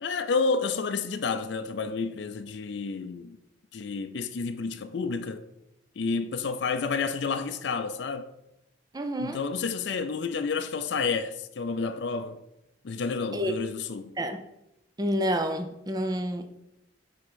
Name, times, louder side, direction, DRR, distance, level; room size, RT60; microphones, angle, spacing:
voice 1, 0.0-3.4 3.7-5.5 6.0-8.3 9.2-12.4 12.8-14.1, left 4 dB, 60° left, 0.4 m, -30 dB
voice 2, 8.9-9.4 13.3-13.5 14.2-14.4 15.0-16.5, equal, 20° right, 0.5 m, -28 dB
7.5 x 3.6 x 6.2 m
head